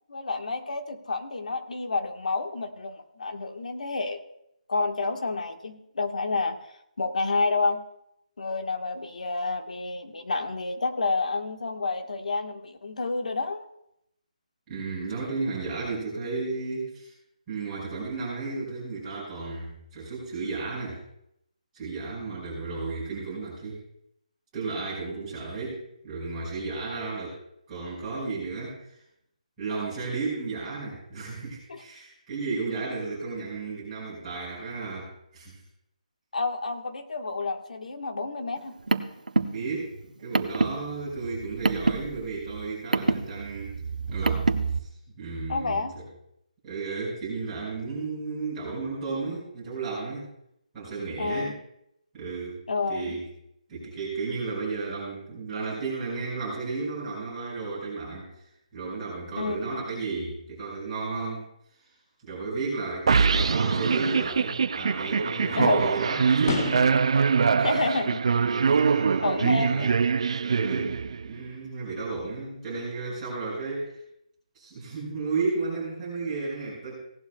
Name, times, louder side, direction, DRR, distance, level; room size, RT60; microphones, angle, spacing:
voice 1, 0.1-4.2 4.7-6.6 7.0-7.8 8.4-13.6 31.7-31.8 36.3-38.8 45.5-45.9 51.2-51.5 52.7-53.1 59.4-59.8 65.6-65.9 67.6-68.2 69.2-69.9, left 3 dB, 70° left, 5 dB, 1.5 m, -29 dB
voice 2, 14.7-17.1 17.5-21.0 21.7-23.8 24.5-27.4 27.7-29.0 29.6-35.5 39.5-39.9 40.2-43.7 44.1-44.5 45.2-46.0 46.6-50.3 50.7-51.5 52.1-52.6 52.9-53.3 53.7-58.3 58.7-61.5 62.2-66.9 67.6-67.8 68.4-71.0 71.2-74.0 74.5-76.9, right 4 dB, 10° right, -8 dB, 5.3 m, -33 dB
Car, 38.6-44.8, right 4 dB, 90° right, 0.9 m, -28 dB
sound 1, 63.1-71.4, right 5 dB, 50° right, 0.3 m, -23 dB
sound 2, 63.2-65.8 66.0-67.4, left 6 dB, 30° left, 0.7 m, -36 dB
17.5 x 11.5 x 2.3 m, 0.78 s
hypercardioid pair, 175°, 4 cm